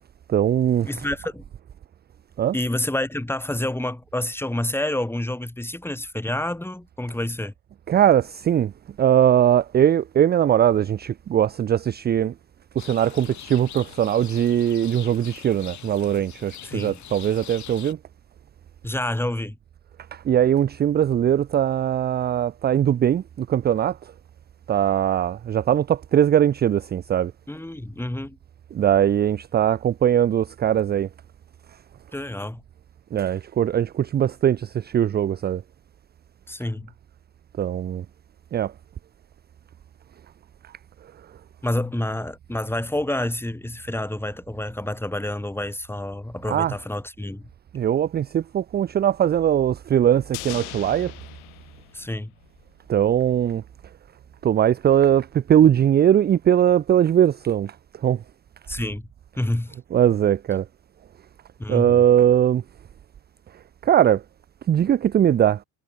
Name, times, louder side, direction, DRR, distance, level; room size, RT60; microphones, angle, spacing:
voice 1, 0.3-1.1 2.4-2.6 7.9-8.7 9.0-12.3 12.8-18.0 20.1-24.1 24.7-27.3 28.7-31.1 33.1-35.6 37.6-38.0 38.5-38.7 46.5-46.8 47.7-51.1 52.9-53.6 54.4-58.2 59.9-60.7 61.7-62.6 63.8-64.2 64.7-65.6, right 10 dB, 25° right, 0.5 m, -20 dB
voice 2, 0.8-1.4 2.5-7.5 16.6-17.0 18.8-19.6 27.5-28.4 32.1-32.6 36.5-36.9 41.6-47.5 51.9-52.3 58.7-59.1 59.4-59.8 61.6-62.0, left 1 dB, 5° left, 4.3 m, -28 dB
Rain, 12.8-17.9, left 11 dB, 50° left, 2.1 m, -42 dB
sound 1, 50.3-52.7 53.0-53.1, left 40 dB or more, 85° left, 3.4 m, -39 dB
supercardioid pair, 90°, 37 cm